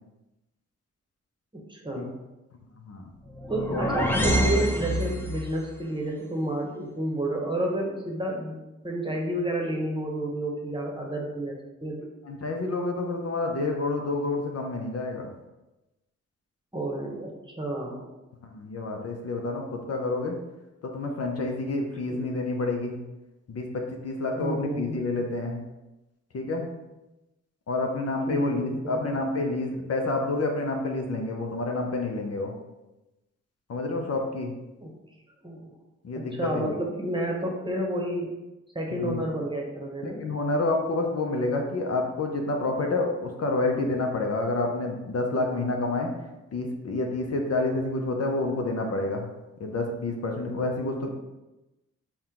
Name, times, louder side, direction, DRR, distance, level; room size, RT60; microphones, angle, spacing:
voice 1, 1.5-2.1 3.5-8.6 8.8-12.0 16.7-18.1 22.1-22.3 24.3-25.0 28.3-29.1 34.8-34.9 35.4-35.8 36.1-38.3 38.7-40.2 51.0-51.1, right 1 dB, 15° right, -1 dB, 1.0 m, -30 dB
sound 1, 3.3-5.6, equal, 5° left, 0.6 m, -26 dB
voice 2, 12.2-15.3 18.4-20.4 20.9-23.0 23.5-25.6 26.3-26.7 27.7-32.5 33.7-34.5 36.0-36.7 38.9-39.2 40.0-46.1 46.5-49.3 49.6-51.1, left 2 dB, 55° left, 2 dB, 0.6 m, -28 dB
4.2 x 2.2 x 3.7 m, 1.0 s
supercardioid pair, 45°, 30 cm